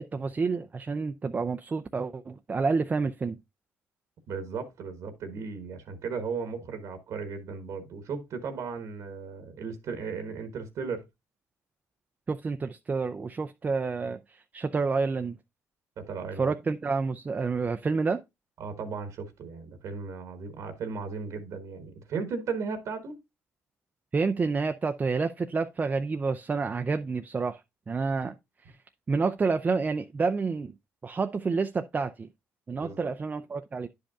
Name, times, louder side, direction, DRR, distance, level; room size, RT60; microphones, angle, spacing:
voice 1, 0.0-3.4 12.3-15.4 16.4-18.2 24.1-27.6 27.9-28.3 29.1-30.7 31.0-32.3 32.7-33.9, right 4 dB, 30° right, 0.4 m, -29 dB
voice 2, 4.3-11.0 16.0-16.5 18.6-23.2 32.8-33.1, right 5 dB, 65° right, 1.1 m, -36 dB
10.0 x 5.1 x 2.3 m
supercardioid pair, 80°, 6 cm